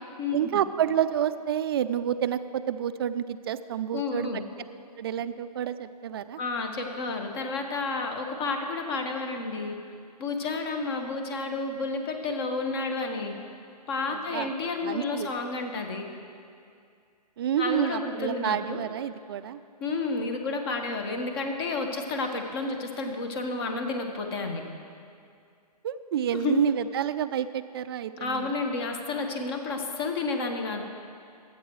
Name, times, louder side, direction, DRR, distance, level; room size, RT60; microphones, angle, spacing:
voice 1, 0.3-4.3 5.0-6.4 14.1-14.5 14.8-15.3 17.4-19.6 25.8-28.6, right 9 dB, 35° right, 12 dB, 0.4 m, -29 dB
voice 2, 3.9-4.4 6.4-9.8 10.2-13.3 13.9-16.1 17.6-18.8 19.8-24.6 26.3-26.5 28.2-30.8, left 3 dB, 35° left, 4 dB, 1.4 m, -31 dB
23.5 x 8.9 x 3.1 m, 2.3 s
hypercardioid pair, 145°, 21 cm